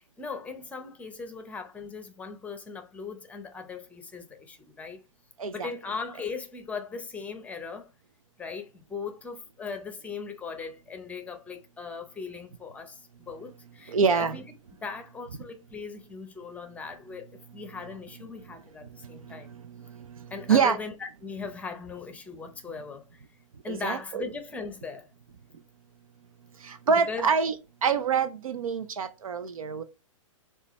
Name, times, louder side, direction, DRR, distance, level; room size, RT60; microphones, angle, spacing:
voice 1, 0.0-5.0 5.5-7.9 8.4-14.4 14.8-17.3 17.5-19.6 20.3-23.2 23.6-25.1 26.9-27.3, left 5 dB, 10° left, 0.7 m, -39 dB
voice 2, 13.9-14.4 20.5-20.8 23.7-24.2 26.7-27.5 27.8-29.8, right 6 dB, 85° right, 0.6 m, -25 dB
6.6 x 2.4 x 3.1 m
hypercardioid pair, 130°, 17 cm